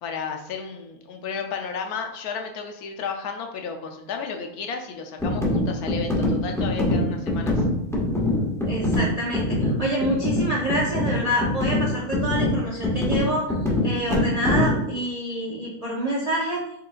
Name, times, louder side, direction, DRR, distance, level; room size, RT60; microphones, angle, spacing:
voice 1, 0.0-7.6, left 5 dB, 90° left, 4 dB, 1.2 m, -33 dB
sound 1, 5.2-14.9, left 1 dB, ahead, 0.7 m, -24 dB
voice 2, 8.6-13.5 13.8-16.6, equal, 50° right, -3 dB, 0.4 m, -27 dB
4.7 x 3.7 x 2.5 m, 0.78 s
omnidirectional pair, 1.6 m